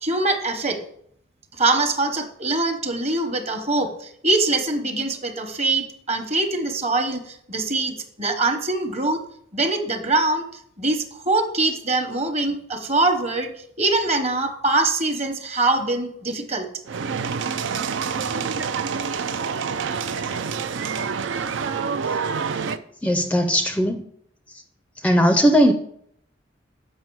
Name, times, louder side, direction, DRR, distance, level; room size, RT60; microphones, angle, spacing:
voice 1, 0.0-0.8 1.6-9.2 9.5-10.5 10.8-13.5 13.8-16.7, right 2 dB, 35° right, 6 dB, 1.0 m, -23 dB
sound 1, 16.9-22.8, right 6 dB, 85° right, 0.5 m, -27 dB
voice 2, 23.0-24.0 25.0-25.7, equal, 10° left, 7 dB, 0.4 m, -18 dB
7.4 x 5.5 x 4.6 m, 0.67 s
head